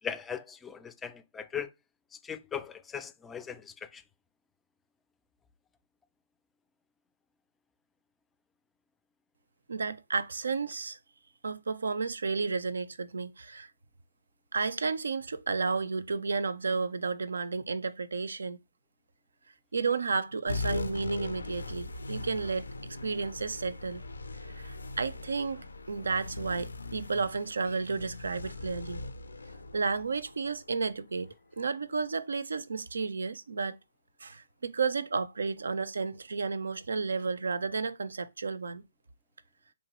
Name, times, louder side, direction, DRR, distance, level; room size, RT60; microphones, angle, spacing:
voice 1, 0.0-1.7 2.2-4.0, left 7 dB, 10° left, 0.4 m, -39 dB
voice 2, 9.7-11.0 11.4-13.7 14.5-18.6 19.7-24.0 24.5-29.0 29.7-33.8 34.2-38.8, right 4 dB, 75° right, 0.4 m, -32 dB
sound 1, 20.5-31.3, left 3 dB, 85° left, 0.6 m, -40 dB
3.7 x 2.9 x 3.0 m
figure-of-eight pair, 140°, 0 cm